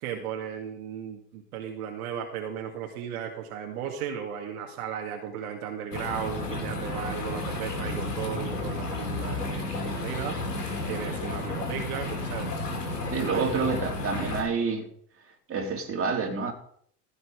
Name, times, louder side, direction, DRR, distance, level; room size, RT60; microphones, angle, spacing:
voice 1, 0.0-10.4 10.6-12.5 13.3-13.6, right 8 dB, 65° right, 2.3 m, -35 dB
sound 1, 5.9-14.4, left 2 dB, 85° left, 3.1 m, -32 dB
voice 2, 13.1-14.9 15.5-16.5, right 4 dB, 30° right, 3.1 m, -28 dB
16.0 x 6.8 x 4.9 m
hypercardioid pair, 75°, 46 cm